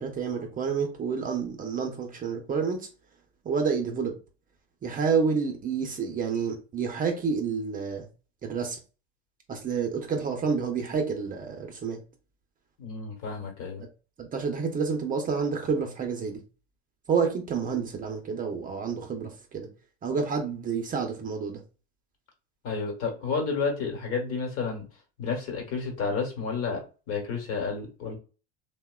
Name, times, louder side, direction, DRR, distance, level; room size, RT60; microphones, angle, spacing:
voice 1, 0.0-2.9 3.4-4.1 4.8-8.1 8.4-8.8 9.5-12.0 14.2-16.4 17.1-19.7 20.0-21.6, right 5 dB, 25° right, 0.6 m, -29 dB
voice 2, 12.8-13.8 22.6-24.8 25.2-28.1, left 5 dB, 55° left, 1.1 m, -31 dB
2.8 x 2.1 x 2.3 m
hypercardioid pair, 95°, 32 cm